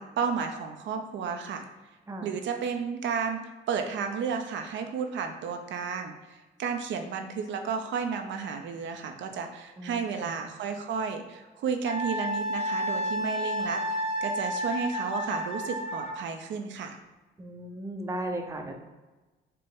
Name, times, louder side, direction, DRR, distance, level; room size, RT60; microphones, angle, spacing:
voice 1, 0.0-1.7 2.2-17.0, right 6 dB, 70° right, 5 dB, 0.5 m, -32 dB
voice 2, 9.8-10.3 17.4-18.8, right 1 dB, 15° right, 3 dB, 0.6 m, -36 dB
Wind instrument woodwind instrument, 11.9-16.2, equal, 35° left, 1.0 m, -31 dB
4.5 x 2.0 x 4.6 m, 1.2 s
cardioid pair, 90°, 20 cm